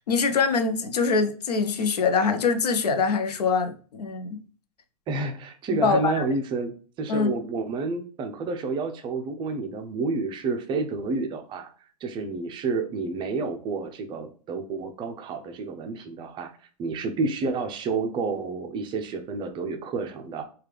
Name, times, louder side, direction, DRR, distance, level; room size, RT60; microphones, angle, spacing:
voice 1, 0.1-4.4 5.7-6.2 7.1-7.3, left 5 dB, 90° left, 0.6 m, -24 dB
voice 2, 5.1-11.7 12.0-16.5 16.8-20.4, right 4 dB, 25° right, 0.4 m, -30 dB
3.2 x 2.3 x 3.2 m
hypercardioid pair, 125°, 20 cm